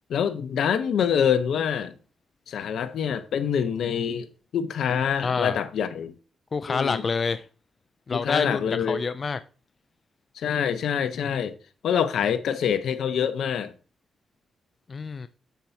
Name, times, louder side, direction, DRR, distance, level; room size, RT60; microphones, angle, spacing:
voice 1, 0.1-1.9 2.5-4.3 4.5-6.1 6.7-7.0 8.1-9.0 10.4-11.6 11.8-13.7, left 8 dB, 80° left, 0.8 m, -25 dB
voice 2, 5.2-5.6 6.5-7.5 8.1-9.4 14.9-15.3, left 5 dB, 45° left, 0.4 m, -27 dB
7.4 x 7.0 x 2.8 m
cardioid pair, 65°, 0 cm